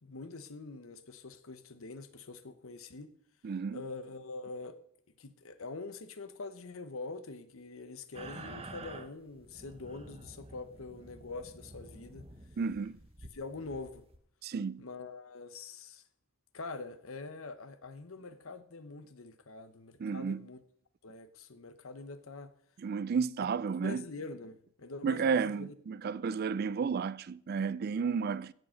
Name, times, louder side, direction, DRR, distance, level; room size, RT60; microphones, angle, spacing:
voice 1, 0.0-3.1 3.7-4.8 5.2-12.3 13.2-14.1 14.8-16.0 16.5-20.6 21.0-22.5 23.8-25.8, left 3 dB, 75° left, 0.9 m, -44 dB
voice 2, 3.4-3.8 12.6-13.0 14.4-14.8 20.0-20.4 22.8-24.0 25.0-28.5, right 5 dB, 45° right, 0.3 m, -32 dB
sound 1, 8.1-14.2, right 2 dB, 30° right, 0.9 m, -49 dB
16.0 x 5.5 x 5.7 m
head